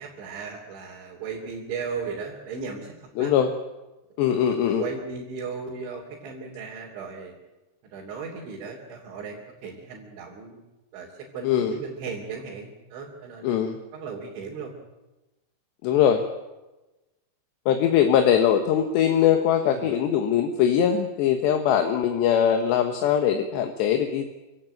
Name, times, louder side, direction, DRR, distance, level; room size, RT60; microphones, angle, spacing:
voice 1, 0.0-3.3 4.3-4.4 4.7-7.3 7.8-10.6 10.9-13.6 13.9-14.7 19.7-19.9, right 5 dB, 85° right, -2 dB, 5.5 m, -36 dB
voice 2, 3.2-3.5 4.2-4.9 11.4-11.8 13.4-13.8 15.8-16.3 17.7-24.3, left 9 dB, 75° left, 6 dB, 3.4 m, -21 dB
27.0 x 17.0 x 9.1 m, 1.1 s
omnidirectional pair, 5.2 m